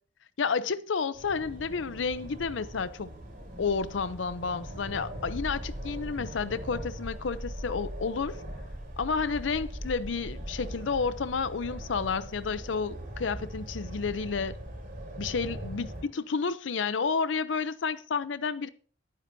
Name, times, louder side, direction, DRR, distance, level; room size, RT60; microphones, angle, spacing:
voice 1, 0.4-3.1 3.6-8.4 9.0-14.6 15.2-18.7, left 5 dB, 75° left, 0.6 m, -31 dB
sound 1, 1.1-16.0, equal, 45° right, 6.9 m, -40 dB
19.0 x 9.7 x 2.7 m
head